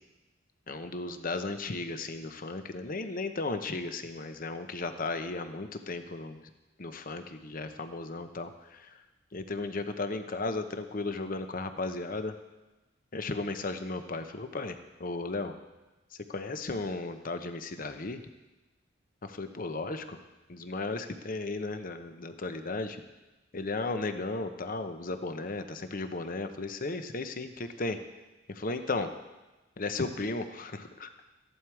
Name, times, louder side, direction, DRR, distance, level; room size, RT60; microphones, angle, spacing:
voice 1, 0.7-6.4 6.8-8.9 9.3-12.3 13.1-14.7 15.0-15.5 16.3-18.2 19.2-20.2 20.5-23.0 23.5-28.0 28.5-29.1 29.8-31.1, left 3 dB, 45° left, 8 dB, 0.9 m, -35 dB
14.5 x 11.0 x 4.8 m, 1.1 s
head